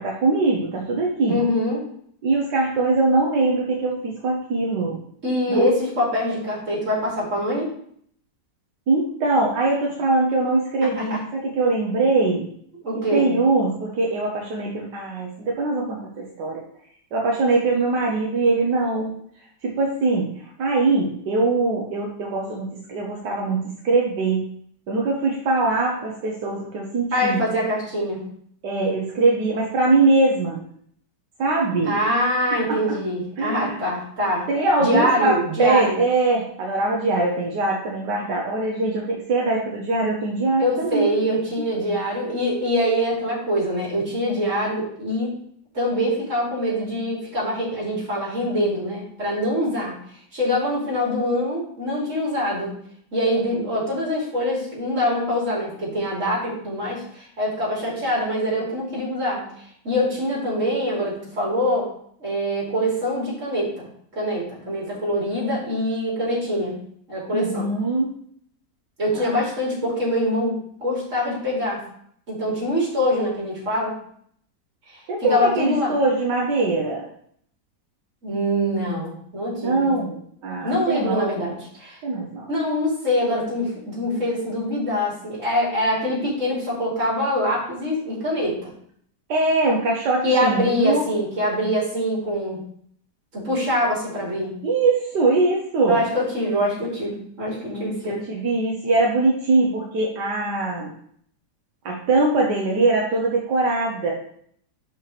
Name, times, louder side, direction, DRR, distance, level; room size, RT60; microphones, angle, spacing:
voice 1, 0.0-1.4 2.2-5.0 5.5-5.7 8.9-12.4 13.0-16.6 17.1-19.1 19.6-24.5 24.9-27.4 28.6-30.6 31.4-32.0 32.7-32.8 33.4-33.8 34.5-41.1 67.3-68.1 69.1-69.4 75.1-77.1 79.6-81.3 82.0-82.5 89.3-91.0 94.6-96.1 97.7-100.9 101.9-104.1, right 3 dB, 80° right, -2 dB, 1.7 m, -22 dB
voice 2, 1.3-1.8 5.2-7.7 10.8-11.2 12.8-13.3 27.1-28.2 31.8-34.4 34.8-36.0 40.6-45.3 45.7-50.0 50.3-52.8 53.1-59.5 59.8-61.9 62.2-66.8 67.1-67.7 69.0-71.8 72.3-73.9 74.9-75.0 75.3-75.9 78.2-79.9 80.6-82.0 82.5-88.7 90.2-92.6 93.3-94.6 95.9-98.2, equal, 45° right, -5 dB, 3.2 m, -24 dB
5.9 x 5.5 x 4.9 m, 0.64 s
omnidirectional pair, 1.8 m